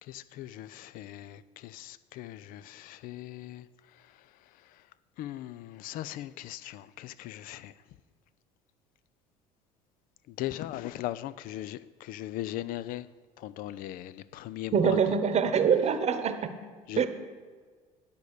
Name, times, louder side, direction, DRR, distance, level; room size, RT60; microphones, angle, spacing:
voice 1, 0.0-4.9 5.2-7.8 10.3-13.1 13.4-15.2 16.9-17.1, left 14 dB, 55° left, 0.5 m, -39 dB
voice 2, 14.7-16.5 17.0-17.1, right 7 dB, 40° right, 1.0 m, -24 dB
10.5 x 5.1 x 8.1 m
hypercardioid pair, 70°, 17 cm